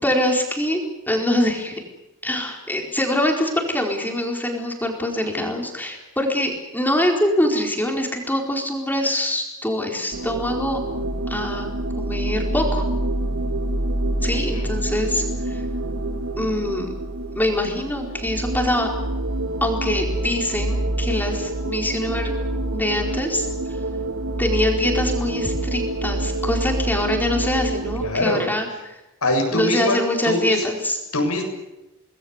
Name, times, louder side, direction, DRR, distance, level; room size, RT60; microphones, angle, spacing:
voice 1, 0.0-1.8 2.2-10.8 11.3-11.7 12.0-12.8 14.2-15.6 16.4-16.9 17.3-18.9 19.6-22.3 22.7-23.5 24.4-29.0 29.5-31.0, left 1 dB, 10° left, 1 dB, 4.4 m, -24 dB
sound 1, 10.1-28.1, right 1 dB, 85° right, 2.7 m, -26 dB
voice 2, 14.3-14.7 28.0-28.5 29.2-30.0 30.2-30.6 31.1-31.4, left 1 dB, 80° left, 3 dB, 7.5 m, -23 dB
26.5 x 20.0 x 8.2 m, 0.96 s
head